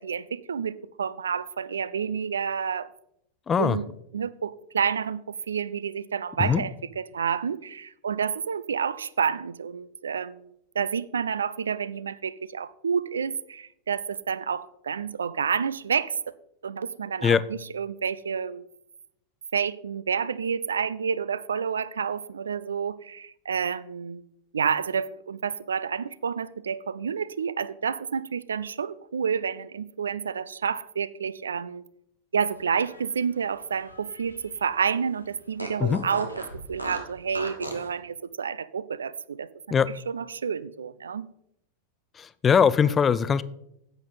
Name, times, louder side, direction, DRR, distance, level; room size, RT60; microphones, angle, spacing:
voice 1, 0.0-2.9 3.6-16.2 16.6-18.7 19.5-24.2 24.5-31.8 32.3-39.5 40.1-41.3, right 6 dB, 70° right, 0.4 m, -29 dB
voice 2, 3.5-3.8 6.4-6.6 17.2-17.4 35.8-36.0 39.7-39.9 42.2-43.4, left 7 dB, 20° left, 0.4 m, -21 dB
Fart, 32.6-34.6 34.9-35.0 35.6-37.9, right 1 dB, 90° right, 1.3 m, -38 dB
10.5 x 8.0 x 4.0 m
figure-of-eight pair, 90°, 0 cm